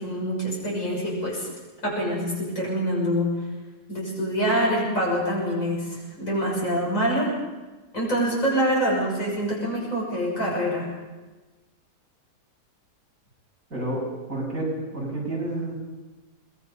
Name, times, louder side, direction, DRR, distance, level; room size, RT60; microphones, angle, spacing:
voice 1, 0.0-1.5 1.8-3.3 3.9-7.3 7.9-10.9, equal, 50° left, -3 dB, 7.2 m, -25 dB
voice 2, 13.7-14.0 14.3-15.7, right 2 dB, 55° right, -3 dB, 7.6 m, -29 dB
23.0 x 20.5 x 5.6 m, 1.2 s
omnidirectional pair, 1.8 m